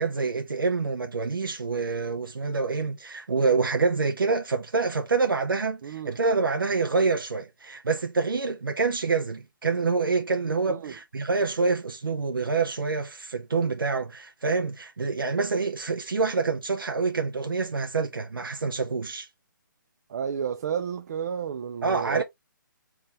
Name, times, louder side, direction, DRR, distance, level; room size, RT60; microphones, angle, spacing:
voice 1, 0.0-19.3 21.8-22.2, right 4 dB, 85° right, 0.7 m, -26 dB
voice 2, 5.8-6.1 10.8-10.9 20.1-22.2, right 7 dB, 45° right, 0.5 m, -31 dB
3.9 x 2.8 x 2.9 m
figure-of-eight pair, 145°, 11 cm